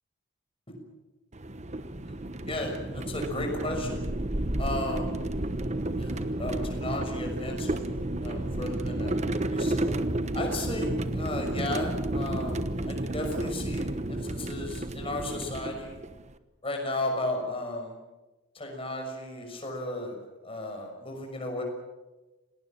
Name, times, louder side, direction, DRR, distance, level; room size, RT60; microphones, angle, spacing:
sound 1, 1.3-16.3, right 1 dB, 30° right, 1.1 m, -31 dB
voice 1, 2.5-4.0 4.6-5.1 6.0-9.9 10.3-13.9 14.2-16.0 16.6-18.0 18.5-20.2 20.4-21.6, left 1 dB, 25° left, 2 dB, 6.4 m, -35 dB
28.0 x 19.0 x 7.5 m, 1.1 s
head